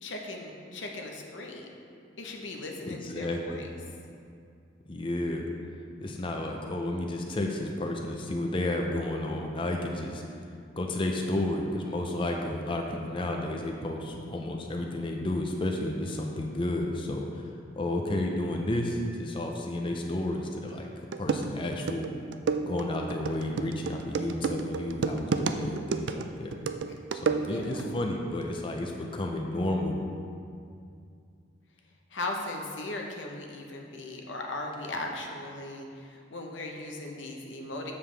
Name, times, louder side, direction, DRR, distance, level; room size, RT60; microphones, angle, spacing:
voice 1, 0.0-1.7 2.2-3.7 27.4-27.9 32.1-37.9, left 2 dB, 80° left, 1 dB, 0.9 m, -38 dB
voice 2, 2.8-3.6 4.9-5.5 6.0-10.2 10.8-17.4 17.8-20.9 21.2-22.1 22.7-26.5 27.1-30.0, left 1 dB, 30° left, 1 dB, 0.5 m, -32 dB
sound 1, 20.7-20.8 21.1-27.8, right 5 dB, 65° right, 0.4 m, -31 dB
7.4 x 6.9 x 3.3 m, 2.4 s
head